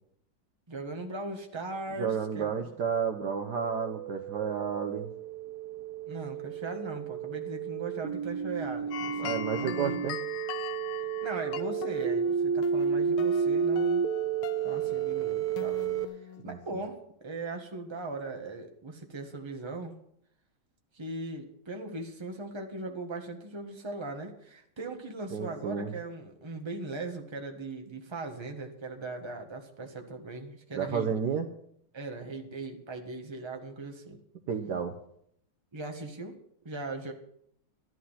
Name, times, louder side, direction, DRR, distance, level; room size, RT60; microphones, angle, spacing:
voice 1, 0.7-2.7 6.1-10.1 11.2-14.0 14.6-15.8 16.1-17.0 17.2-19.9 20.9-31.1 31.9-34.2 35.7-36.4 36.6-37.1, right 2 dB, 15° right, 3 dB, 1.4 m, -39 dB
voice 2, 2.0-5.1 9.2-10.2 16.4-16.6 25.3-25.9 30.7-31.5 34.5-34.9, right 6 dB, 60° right, 6 dB, 1.3 m, -31 dB
sound 1, 2.8-16.0, right 7 dB, 85° right, 1.6 m, -32 dB
sound 2, 8.9-16.4, left 10 dB, 80° left, 1.7 m, -41 dB
14.0 x 11.0 x 5.7 m, 0.71 s
omnidirectional pair, 2.3 m